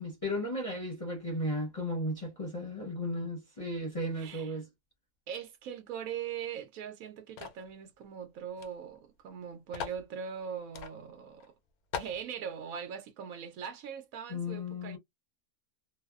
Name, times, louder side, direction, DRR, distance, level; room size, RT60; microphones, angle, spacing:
voice 1, 0.0-4.7 14.3-15.0, left 1 dB, 35° left, 0.6 m, -35 dB
voice 2, 4.1-4.5 5.3-11.5 11.9-15.0, right 7 dB, 75° right, 1.0 m, -41 dB
sound 1, 7.4-7.7 8.6-8.7 9.0-9.1 9.7-10.0 10.7-10.9 11.4-11.5 11.9-12.2, left 7 dB, 90° left, 1.1 m, -39 dB
2.7 x 2.1 x 2.2 m
omnidirectional pair, 1.5 m